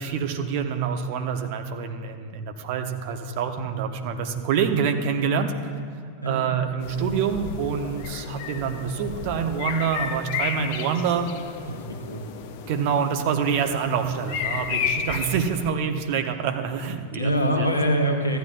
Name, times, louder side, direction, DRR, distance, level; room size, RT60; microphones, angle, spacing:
voice 1, 0.0-5.5 6.2-11.3 12.7-17.7, right 7 dB, 45° right, 5 dB, 0.9 m, -26 dB
sound 1, 6.8-15.7, left 7 dB, 45° left, 0.7 m, -33 dB
voice 2, 11.7-12.2 17.1-18.4, equal, 80° left, 4 dB, 1.1 m, -24 dB
15.0 x 10.0 x 2.5 m, 2.3 s
figure-of-eight pair, 90°, 0 cm